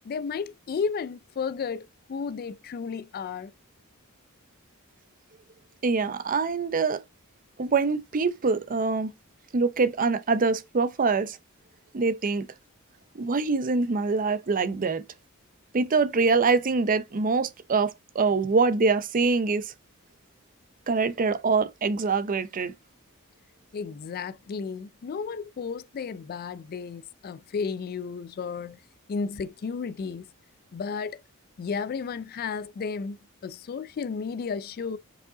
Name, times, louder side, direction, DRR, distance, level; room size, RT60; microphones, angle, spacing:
voice 1, 0.0-3.5 23.7-28.8 29.1-30.3 30.7-31.2 31.6-35.0, left 5 dB, 45° left, 0.3 m, -33 dB
voice 2, 5.8-7.0 7.6-9.1 9.5-11.4 11.9-12.5 13.1-15.0 15.7-19.7 20.9-22.7, right 4 dB, 40° right, 0.6 m, -24 dB
5.2 x 4.9 x 3.8 m
head